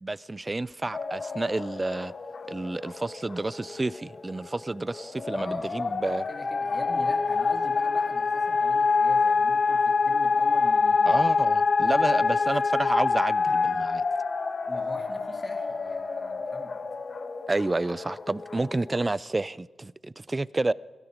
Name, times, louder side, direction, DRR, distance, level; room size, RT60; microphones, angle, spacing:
voice 1, 0.0-2.1 2.5-6.2 11.1-14.0 17.5-20.7, right 2 dB, 25° right, 0.4 m, -30 dB
sound 1, 0.9-19.0, left 4 dB, 45° left, 1.1 m, -26 dB
voice 2, 5.3-11.3 11.6-12.3 14.7-16.8, left 2 dB, 30° left, 2.6 m, -43 dB
16.5 x 16.0 x 5.1 m
cardioid pair, 80°, 0 cm